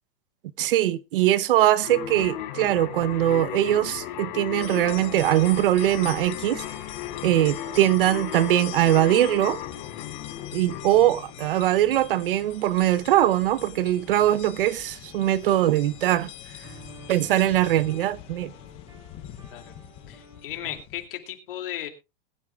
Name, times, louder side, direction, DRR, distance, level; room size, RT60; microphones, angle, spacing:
voice 1, 0.6-6.6 7.2-9.6 10.5-16.3 17.1-18.5, right 13 dB, 65° right, 0.8 m, -21 dB
sound 1, 1.8-11.9, left 11 dB, 45° left, 2.8 m, -36 dB
sound 2, 2.2-20.8, equal, 10° right, 3.5 m, -54 dB
sound 3, 4.6-21.1, left 13 dB, 20° left, 0.6 m, -43 dB
voice 2, 20.1-21.9, left 12 dB, 70° left, 2.6 m, -35 dB
20.5 x 11.0 x 2.3 m
supercardioid pair, 175°, 29 cm